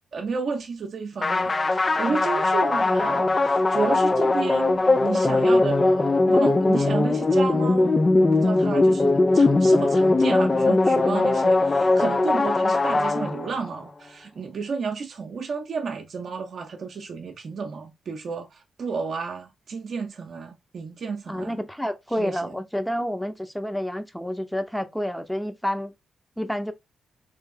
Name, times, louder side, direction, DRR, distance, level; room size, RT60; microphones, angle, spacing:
voice 1, 0.1-21.6 22.2-22.5, right 5 dB, 60° right, 0.7 m, -32 dB
sound 1, 1.2-13.8, left 2 dB, 30° left, 0.5 m, -20 dB
voice 2, 21.3-25.9 26.4-26.7, equal, 5° left, 0.9 m, -29 dB
3.4 x 3.2 x 3.6 m
hypercardioid pair, 45°, 0 cm